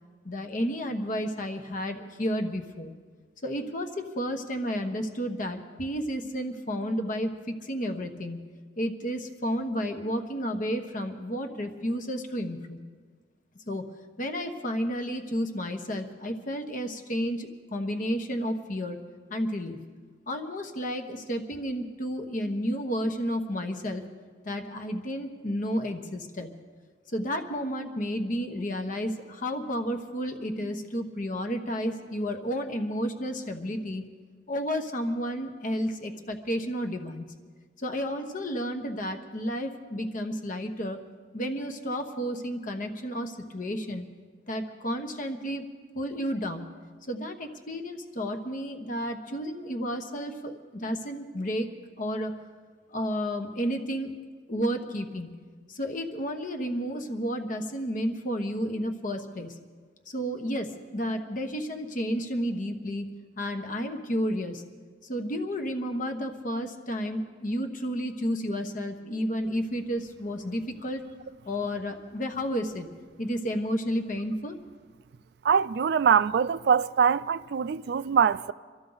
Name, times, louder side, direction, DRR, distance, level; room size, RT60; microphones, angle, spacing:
voice 1, 0.2-2.9 3.4-8.4 8.8-12.8 13.7-19.0 19.3-19.8 20.3-24.1 24.4-26.5 27.1-34.1 34.5-37.3 37.8-41.0 41.3-44.0 44.5-45.7 45.9-46.7 47.1-51.7 52.0-52.3 52.9-54.1 54.5-55.3 55.7-59.6 60.1-63.1 63.4-64.6 65.0-71.0 71.4-72.9 73.2-74.6, equal, 45° left, 1.1 m, -31 dB
voice 2, 75.4-78.5, right 7 dB, 65° right, 0.3 m, -23 dB
24.0 x 13.0 x 4.0 m
head